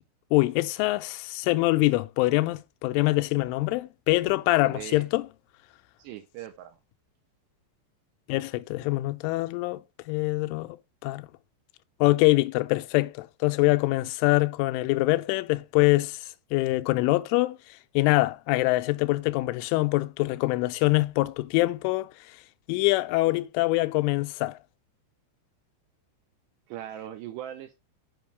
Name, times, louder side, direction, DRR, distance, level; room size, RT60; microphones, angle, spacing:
voice 1, 0.3-5.3 8.3-9.8 10.1-10.8 11.0-11.3 12.0-17.6 18.0-22.1 22.7-24.6, left 21 dB, 90° left, 3.1 m, -24 dB
voice 2, 4.6-5.1 6.0-6.8 26.7-27.8, right 11 dB, 80° right, 2.6 m, -39 dB
8.5 x 5.4 x 3.3 m
omnidirectional pair, 5.5 m